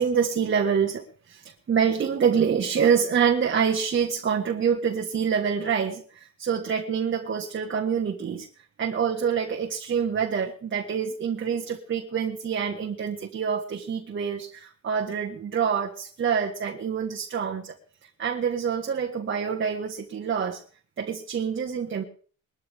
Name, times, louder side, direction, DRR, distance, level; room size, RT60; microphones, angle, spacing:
voice 1, 0.0-6.0 6.5-8.5 8.8-17.8 18.0-20.6 21.0-22.0, right 7 dB, 40° right, 1 dB, 1.5 m, -26 dB
21.0 x 13.5 x 3.6 m, 0.42 s
cardioid pair, 140°, 32 cm